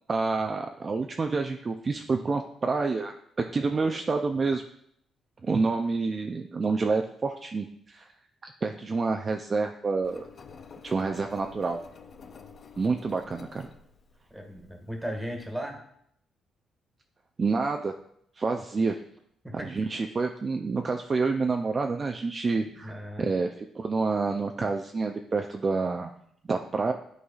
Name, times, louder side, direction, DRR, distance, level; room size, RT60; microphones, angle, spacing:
voice 1, 0.1-3.1 3.5-4.6 5.4-8.1 8.6-10.3 10.8-11.8 12.8-13.7 17.4-17.9 18.4-19.0 19.5-26.1 26.5-26.9, right 4 dB, 35° right, 4 dB, 0.4 m, -28 dB
Engine, 10.0-15.5, left 5 dB, 50° left, 0.5 m, -49 dB
voice 2, 14.3-15.8 18.8-18.9 19.4-19.8 22.8-23.3, equal, 5° right, 2 dB, 1.6 m, -36 dB
11.5 x 4.0 x 2.4 m, 0.69 s
cardioid pair, 90°, 0 cm